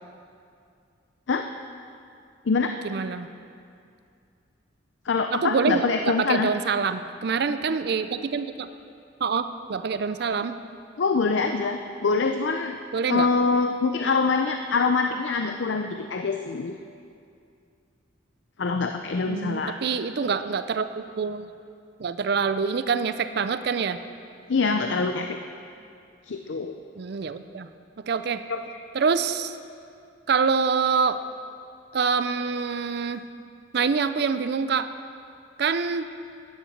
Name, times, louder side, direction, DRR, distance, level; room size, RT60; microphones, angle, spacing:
voice 1, 2.8-3.3 5.3-8.7 9.2-10.6 12.9-13.3 19.3-21.5 22.0-24.0 27.0-27.7 28.1-28.4 28.9-29.6 30.3-31.2 31.9-33.2 33.7-34.9 35.6-36.1, right 5 dB, 60° right, 11 dB, 0.5 m, -26 dB
voice 2, 5.1-6.5 11.0-12.8 13.1-16.8 18.6-19.8 24.5-25.4 26.3-26.8 28.5-28.6, left 4 dB, 70° left, 6 dB, 0.5 m, -24 dB
11.0 x 9.6 x 7.3 m, 2.4 s
head